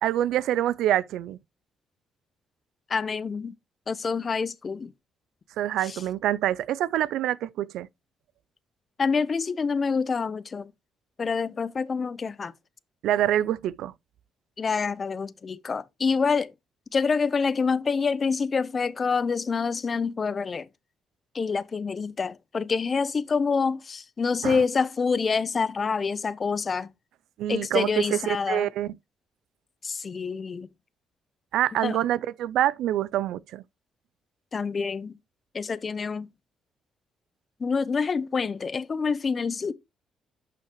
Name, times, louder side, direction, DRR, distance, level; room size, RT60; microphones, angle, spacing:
voice 1, 0.0-1.4 5.6-7.9 13.0-13.9 24.4-24.6 27.4-28.9 31.5-33.6, right 12 dB, 85° right, 0.4 m, -26 dB
voice 2, 2.9-3.5 3.9-4.9 5.8-6.0 9.0-10.7 11.2-12.5 14.6-16.5 16.9-20.7 21.3-26.9 27.5-28.7 29.8-30.7 31.8-32.0 34.5-35.2 35.5-36.3 37.6-39.7, left 5 dB, 40° left, 0.7 m, -27 dB
11.5 x 5.6 x 3.0 m
cardioid pair, 90°, 0 cm